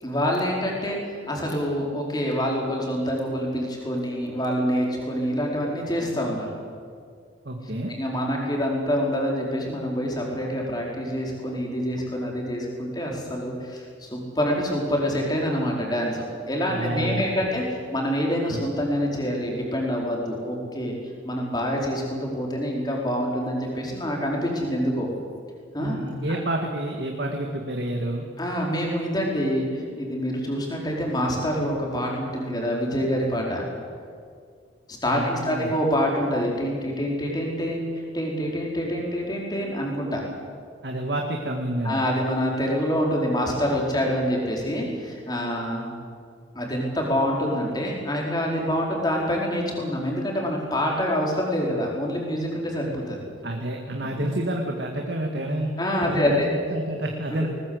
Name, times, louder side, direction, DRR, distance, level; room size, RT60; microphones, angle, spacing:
voice 1, 0.0-6.5 7.9-20.9 21.2-25.1 25.7-26.0 26.3-26.4 28.4-33.7 34.9-40.2 41.8-45.9 46.5-53.2 54.0-54.2 55.8-56.5 57.4-57.5, equal, 20° left, -1 dB, 4.7 m, -26 dB
voice 2, 7.5-7.9 16.6-17.3 18.5-18.6 25.8-28.3 35.1-35.7 40.8-42.0 53.4-55.8 56.1-57.5, right 1 dB, 60° right, 2 dB, 2.0 m, -29 dB
20.5 x 20.5 x 8.0 m, 2.1 s
head